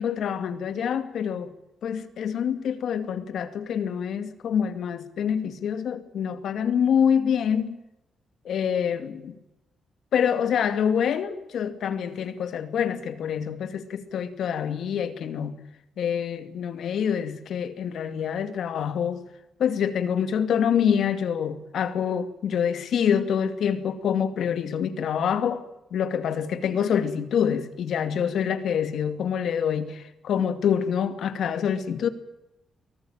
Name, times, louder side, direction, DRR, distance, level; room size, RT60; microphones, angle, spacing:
voice 1, 0.0-1.5 1.8-7.8 8.4-9.4 10.1-15.5 16.0-19.2 19.6-25.6 25.9-32.1, left 8 dB, 75° left, 10 dB, 2.4 m, -26 dB
24.0 x 18.5 x 8.8 m, 0.91 s
cardioid pair, 140°, 0 cm